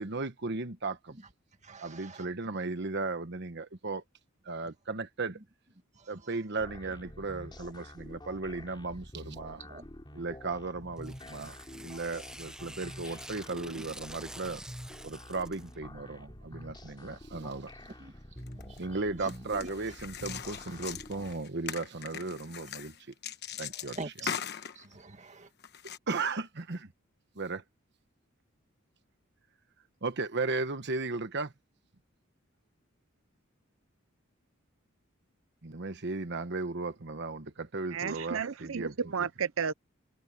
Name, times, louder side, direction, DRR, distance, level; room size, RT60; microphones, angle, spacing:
voice 1, 0.0-1.2 1.8-4.0 4.4-5.4 6.1-9.6 10.2-11.6 11.8-14.6 15.0-17.7 18.7-22.9 23.6-24.0 25.8-26.9 27.3-27.6 30.0-31.5 35.6-39.0, right 3 dB, 55° right, 1.2 m, -36 dB
voice 2, 1.1-3.1 5.3-5.4 5.9-6.4 9.6-9.9 11.7-11.9 13.8-13.9 16.3-16.5 16.8-19.7 20.5-20.9 23.2-24.4 24.7-25.5, right 3 dB, 35° right, 1.9 m, -48 dB
sound 1, 6.6-21.4, left 1 dB, 20° left, 4.1 m, -48 dB
Tearing, 11.0-15.8, right 1 dB, 5° right, 0.9 m, -48 dB
sound 2, 18.4-18.8 19.3-24.9 25.6-26.0, left 8 dB, 55° left, 1.2 m, -40 dB
voice 3, 37.9-39.7, right 6 dB, 80° right, 0.7 m, -32 dB
head